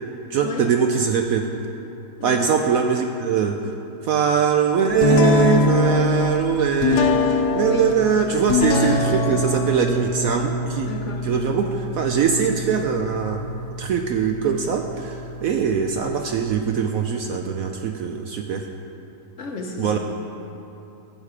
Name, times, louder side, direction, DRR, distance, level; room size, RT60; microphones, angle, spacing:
voice 1, 0.3-1.5 2.2-3.7 4.0-13.4 13.8-18.7 19.8-20.0, right 7 dB, 70° right, 4 dB, 0.8 m, -22 dB
sound 1, 5.0-16.5, left 2 dB, 70° left, 1.3 m, -24 dB
voice 2, 7.7-8.5 10.8-11.2 19.4-20.0, left 1 dB, 50° left, 1 dB, 1.1 m, -31 dB
15.0 x 6.6 x 4.9 m, 2.9 s
omnidirectional pair, 1.9 m